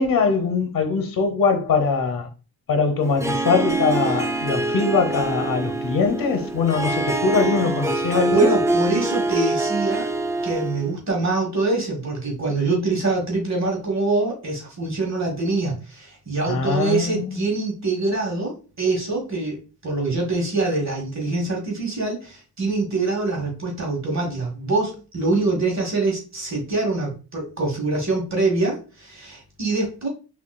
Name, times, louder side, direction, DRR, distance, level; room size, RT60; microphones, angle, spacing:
voice 1, 0.0-2.3 2.7-8.5 16.4-17.4, left 4 dB, 60° left, 0.9 m, -22 dB
Harp, 3.0-10.9, right 2 dB, 10° right, 0.3 m, -24 dB
voice 2, 8.3-10.1 10.4-30.1, right 3 dB, 45° right, 1.3 m, -24 dB
3.7 x 2.5 x 2.2 m
cardioid pair, 70°, 39 cm